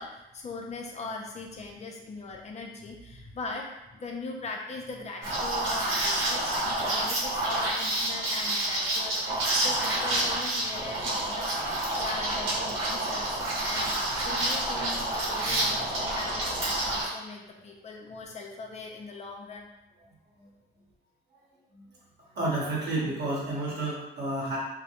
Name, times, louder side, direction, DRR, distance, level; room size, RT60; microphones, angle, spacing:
voice 1, 0.0-11.6 12.0-14.0 14.2-19.7, left 3 dB, 35° left, 1 dB, 0.5 m, -40 dB
Liquid, 5.2-17.1, right 1 dB, 90° right, 0.8 m, -28 dB
voice 2, 22.3-24.6, right 2 dB, 55° right, -6 dB, 0.9 m, -30 dB
2.2 x 2.1 x 2.8 m, 0.94 s
cardioid pair, 90°, 20 cm